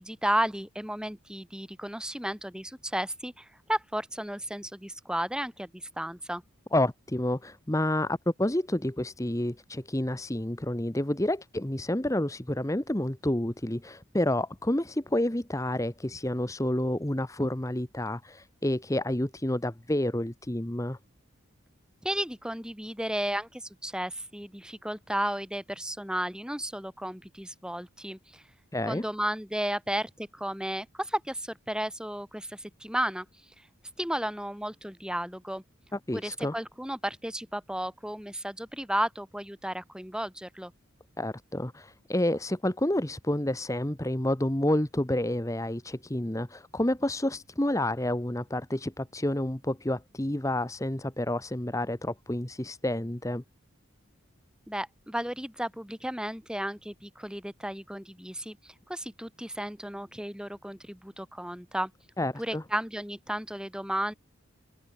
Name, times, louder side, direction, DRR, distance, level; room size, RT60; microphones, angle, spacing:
voice 1, 0.0-6.4 22.0-28.4 28.9-33.3 34.0-35.6 36.1-40.7 54.7-61.9 62.4-64.1, right 1 dB, 5° right, 4.3 m, -33 dB
voice 2, 6.7-21.0 28.7-29.0 35.9-36.5 41.2-53.4 62.2-62.6, left 1 dB, 15° left, 1.0 m, -29 dB
open air
head